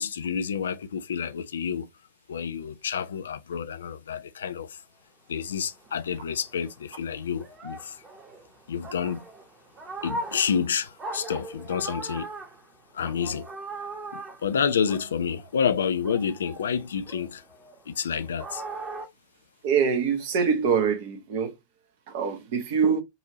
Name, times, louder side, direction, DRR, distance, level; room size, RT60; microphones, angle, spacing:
voice 1, 0.0-1.9 2.3-4.8 5.3-8.0 8.7-9.2 10.0-12.3 12.9-13.5 14.1-17.4 17.9-18.6, left 7 dB, 65° left, 0.4 m, -29 dB
sound 1, 5.5-15.7 16.0-19.1, right 2 dB, 20° right, 1.2 m, -40 dB
voice 2, 19.6-21.5 22.1-23.0, right 6 dB, 50° right, 1.1 m, -24 dB
5.4 x 2.7 x 2.9 m
figure-of-eight pair, 90°, 0 cm